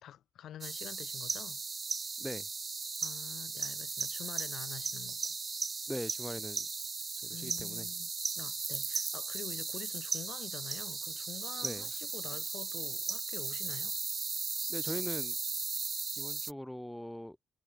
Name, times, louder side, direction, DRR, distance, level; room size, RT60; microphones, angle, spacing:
voice 1, 0.0-1.6 3.0-5.4 7.3-8.1 8.4-13.9, left 11 dB, 70° left, 1.9 m, -47 dB
sound 1, 0.6-16.5, right 4 dB, 35° right, 0.6 m, -37 dB
voice 2, 5.9-6.7 7.2-7.9 11.6-11.9 14.7-15.4 16.2-17.4, equal, 5° left, 1.1 m, -41 dB
cardioid pair, 90°, 0 cm